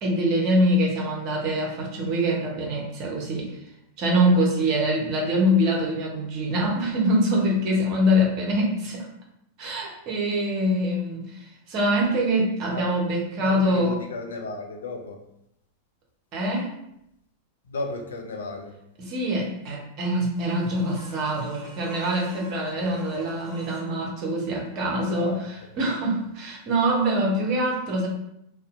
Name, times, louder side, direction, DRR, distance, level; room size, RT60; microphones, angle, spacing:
voice 1, 0.0-3.6 4.0-9.1 9.6-13.9 16.3-16.7 19.0-28.1, equal, 40° right, -1 dB, 0.7 m, -24 dB
voice 2, 13.4-15.2 17.7-18.8 20.8-21.0 22.6-23.0 23.3-23.4 25.2-25.7, left 3 dB, 65° left, 3 dB, 0.4 m, -35 dB
sound 1, 20.3-23.9 26.8-26.9, right 1 dB, 20° left, 1.1 m, -46 dB
2.5 x 2.1 x 2.4 m, 0.79 s
figure-of-eight pair, 90°, 0 cm